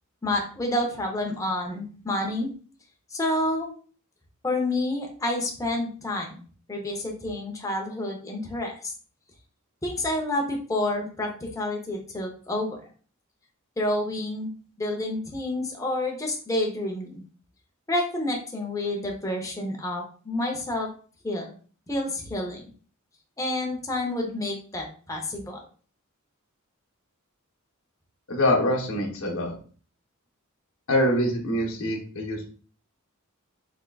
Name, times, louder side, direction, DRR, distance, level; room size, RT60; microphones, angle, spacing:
voice 1, 0.2-2.5 3.1-3.7 4.4-6.4 6.7-8.7 9.8-12.8 13.8-14.5 14.8-17.2 17.9-20.9 21.2-21.5 21.9-22.7 23.4-25.6, left 1 dB, 15° left, 1 dB, 0.7 m, -29 dB
voice 2, 28.3-29.5 30.9-32.5, left 1 dB, 65° left, -1 dB, 0.9 m, -24 dB
3.6 x 3.4 x 2.2 m, 0.41 s
head